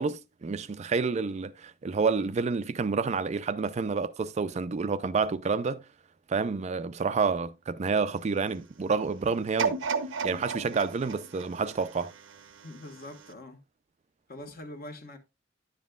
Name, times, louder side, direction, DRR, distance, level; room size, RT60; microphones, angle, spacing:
voice 1, 0.0-5.8 6.3-9.8 10.2-12.1, right 4 dB, 35° right, 0.4 m, -29 dB
sound 1, 9.6-12.7 13.2-13.3, right 5 dB, 85° right, 0.8 m, -33 dB
voice 2, 12.6-13.6 14.3-15.2, left 1 dB, 50° left, 1.3 m, -43 dB
10.5 x 7.3 x 2.3 m
head